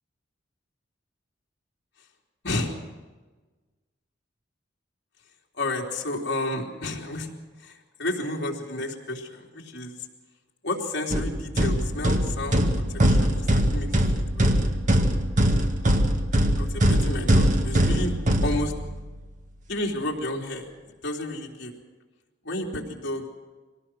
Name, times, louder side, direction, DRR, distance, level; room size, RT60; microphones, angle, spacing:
voice 1, 2.4-2.8 5.6-7.3 7.6-9.9 10.6-13.9 14.1-14.6 16.6-18.1 18.4-18.7 19.7-20.7 21.0-21.7 22.4-23.3, left 1 dB, 65° left, -1 dB, 3.5 m, -31 dB
sound 1, 11.1-19.1, equal, 45° right, 1.8 m, -22 dB
24.0 x 18.5 x 6.3 m, 1.3 s
head